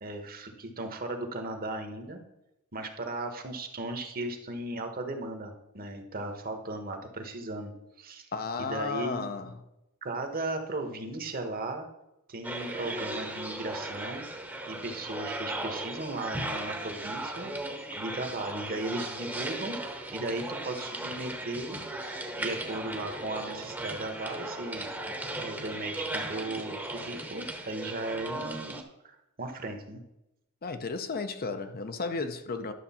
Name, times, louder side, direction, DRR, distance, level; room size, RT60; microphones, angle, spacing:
voice 1, 0.0-2.2 2.7-7.7 8.0-8.3 8.6-9.2 10.0-11.9 12.3-14.2 14.7-17.5 17.9-19.8 20.1-21.8 22.4-24.9 25.4-30.0, right 2 dB, 40° right, 1.2 m, -36 dB
voice 2, 8.3-9.5 30.6-32.7, left 4 dB, 45° left, 0.7 m, -33 dB
sound 1, 12.4-28.8, right 1 dB, 10° right, 1.0 m, -37 dB
11.0 x 6.5 x 4.3 m
head